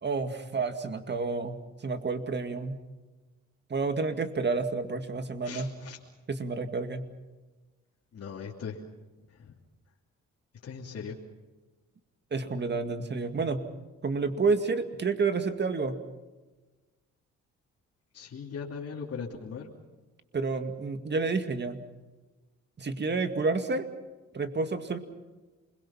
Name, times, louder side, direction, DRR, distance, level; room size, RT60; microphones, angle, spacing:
voice 1, 0.0-2.8 3.7-5.7 6.3-7.1 12.3-13.7 14.0-16.0 20.3-21.8 22.8-23.9 24.3-25.0, right 4 dB, 35° right, 8 dB, 2.2 m, -30 dB
voice 2, 5.4-6.0 8.1-8.8 9.3-9.5 10.6-11.2 18.1-19.7, left 6 dB, 50° left, -3 dB, 3.1 m, -39 dB
28.0 x 22.0 x 5.8 m, 1.2 s
cardioid pair, 90°, 30 cm